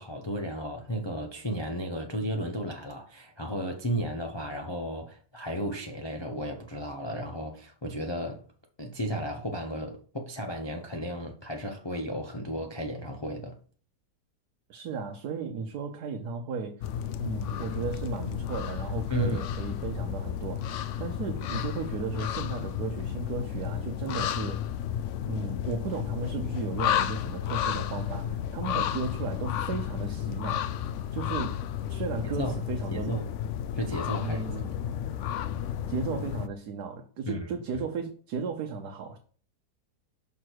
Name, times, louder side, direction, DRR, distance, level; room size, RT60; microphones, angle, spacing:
voice 1, 0.0-8.4 8.8-13.6 19.1-19.4 32.4-32.6 32.9-33.3 33.7-34.6 37.3-37.5, equal, 25° left, 0.6 m, -34 dB
voice 2, 14.7-16.8 17.2-24.7 25.3-30.7 31.1-31.6 31.9-33.1 34.2-34.8 35.9-39.2, right 5 dB, 70° right, 1.3 m, -35 dB
sound 1, 16.8-36.5, left 10 dB, 85° left, 0.6 m, -32 dB
6.2 x 6.0 x 4.6 m
omnidirectional pair, 1.8 m